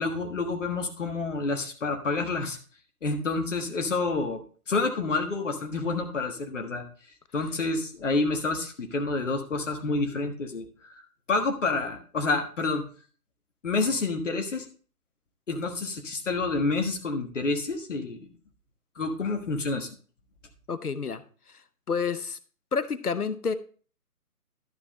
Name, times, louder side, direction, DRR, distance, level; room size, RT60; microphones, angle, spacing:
voice 1, 0.0-2.6 3.0-4.4 4.7-6.8 7.3-12.8 13.6-14.7 15.5-18.3 18.9-19.9, left 3 dB, 55° left, 5 dB, 1.5 m, -28 dB
voice 2, 20.7-21.2 21.9-22.4 22.7-23.5, left 5 dB, 75° left, 14 dB, 0.9 m, -29 dB
12.5 x 6.1 x 3.1 m, 0.41 s
figure-of-eight pair, 140°, 46 cm